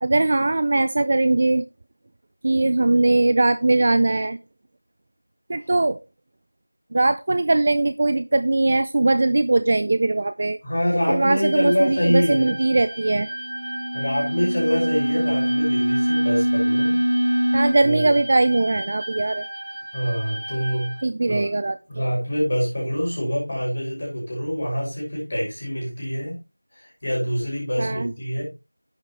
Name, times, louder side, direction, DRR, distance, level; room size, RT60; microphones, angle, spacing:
voice 1, 0.0-1.6 2.4-4.4 5.5-6.0 6.9-10.6 11.1-13.3 17.5-19.4 21.0-21.8 27.8-28.1, right 2 dB, 25° right, 11 dB, 0.4 m, -20 dB
voice 2, 10.6-12.6 13.9-17.0 17.8-18.1 19.9-20.9 21.3-21.5 21.9-26.4 26.7-28.4, equal, 25° left, -5 dB, 6.2 m, -25 dB
sound 1, 11.4-21.0, right 1 dB, 50° right, 3.7 m, -35 dB
sound 2, 13.3-17.7, equal, 80° right, 1.4 m, -23 dB
11.0 x 8.0 x 3.2 m, 0.27 s
figure-of-eight pair, 175°, 0 cm